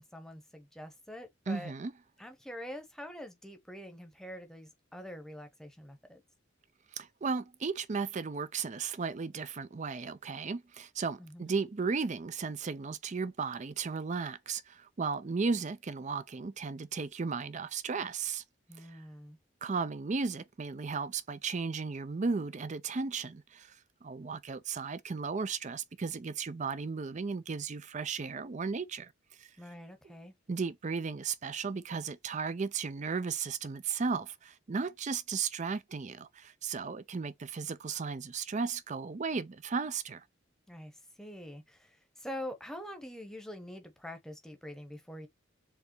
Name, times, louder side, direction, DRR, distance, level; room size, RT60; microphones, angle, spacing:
voice 1, 0.0-1.7 2.2-6.2 11.2-11.6 18.7-19.4 29.6-30.3 40.7-45.3, left 1 dB, 5° left, 1.0 m, -45 dB
voice 2, 1.5-1.9 6.9-18.4 18.8-19.0 19.6-23.7 24.0-29.1 29.4-29.5 30.5-40.2, right 5 dB, 35° right, 0.4 m, -35 dB
4.7 x 3.4 x 3.0 m
head